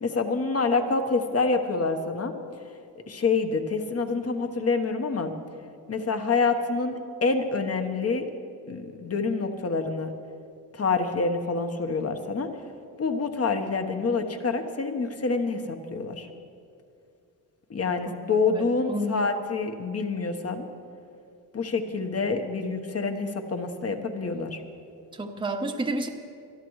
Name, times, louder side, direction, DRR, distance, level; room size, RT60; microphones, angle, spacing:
voice 1, 0.0-2.3 3.1-5.3 5.9-8.3 8.7-10.1 10.7-12.5 13.0-16.3 17.7-20.6 21.5-24.6, left 4 dB, 35° left, 6 dB, 1.3 m, -27 dB
voice 2, 18.5-19.3 25.2-26.1, right 1 dB, 10° right, 4 dB, 0.9 m, -30 dB
23.0 x 12.5 x 3.2 m, 2.5 s
cardioid pair, 80°, 41 cm